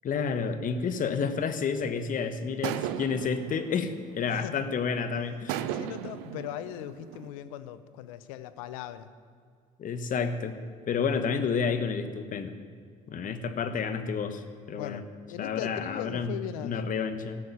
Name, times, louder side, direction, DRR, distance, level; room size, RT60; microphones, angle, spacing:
voice 1, 0.0-5.7 9.8-10.6 10.9-12.6 13.1-15.0 15.4-17.4, left 6 dB, 50° left, 9 dB, 1.1 m, -30 dB
sound 1, 1.8-2.0 2.6-4.8 5.5-7.3, right 11 dB, 85° right, 0.5 m, -36 dB
voice 2, 5.7-9.1 14.8-16.9, left 12 dB, 90° left, 13 dB, 0.6 m, -39 dB
13.0 x 6.4 x 8.5 m, 2.1 s
supercardioid pair, 65°, 17 cm